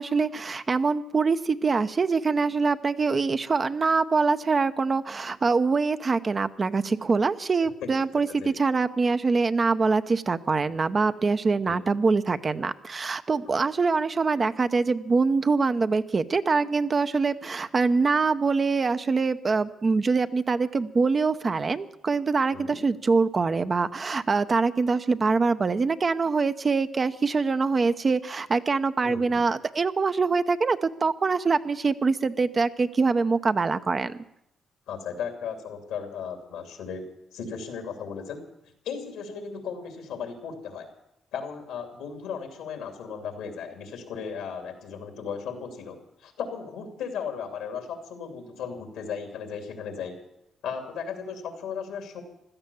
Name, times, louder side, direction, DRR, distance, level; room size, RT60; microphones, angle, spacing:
voice 1, 0.0-34.2, right 4 dB, 40° right, 11 dB, 0.7 m, -24 dB
voice 2, 29.0-29.4 34.9-37.1 37.3-38.4 38.8-40.9 41.3-50.2 50.6-52.2, left 6 dB, 90° left, 4 dB, 2.8 m, -36 dB
16.0 x 12.5 x 7.0 m, 0.81 s
cardioid pair, 70°, 0 cm